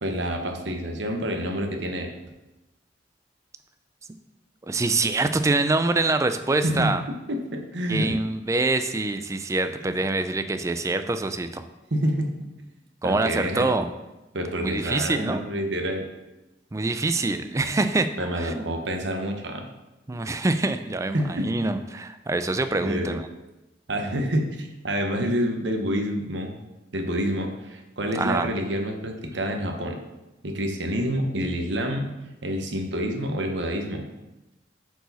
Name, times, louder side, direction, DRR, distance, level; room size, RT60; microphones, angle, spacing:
voice 1, 0.0-2.1 6.6-8.2 9.8-10.0 11.9-12.7 13.0-13.8 14.3-16.0 18.2-19.7 20.1-20.2 21.1-21.5 22.7-23.2 23.9-26.5 26.9-30.0 30.4-32.1 32.4-34.1, equal, 70° right, 4 dB, 1.0 m, -28 dB
voice 2, 4.7-7.0 7.9-11.6 13.0-13.9 14.6-15.4 16.7-18.6 20.1-23.3 28.1-28.5, right 2 dB, 15° right, 10 dB, 0.3 m, -25 dB
8.2 x 4.8 x 4.0 m, 1.0 s
head